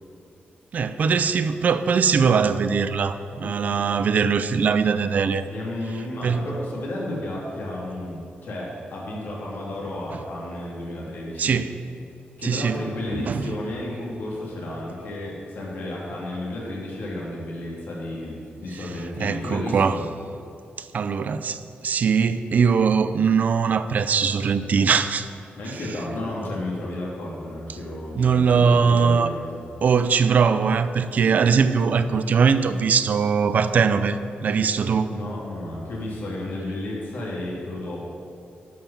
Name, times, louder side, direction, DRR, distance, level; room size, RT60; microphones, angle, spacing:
voice 1, 0.7-5.4 6.2-6.4 11.4-11.7 12.4-12.8 13.1-13.5 19.2-20.0 20.8-25.3 28.2-29.3 29.8-35.1, right 6 dB, 50° right, 11 dB, 0.4 m, -21 dB
voice 2, 3.4-3.8 5.5-11.5 12.4-20.0 25.5-29.6 35.1-38.0, left 1 dB, 65° left, -4 dB, 2.8 m, -32 dB
11.0 x 5.7 x 7.3 m, 2.5 s
wide cardioid pair, 175°, 4 cm